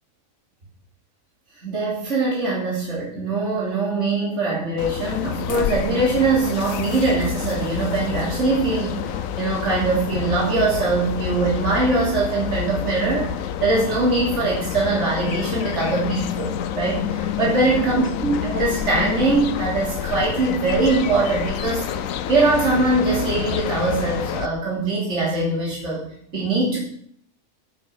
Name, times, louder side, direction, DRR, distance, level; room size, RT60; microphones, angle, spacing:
voice 1, 1.6-21.9 22.3-26.0 26.3-26.8, right 3 dB, 60° right, -4 dB, 3.4 m, -22 dB
sound 1, 4.8-24.5, left 9 dB, 75° left, 1.1 m, -28 dB
14.0 x 7.1 x 5.9 m, 0.65 s
omnidirectional pair, 1.4 m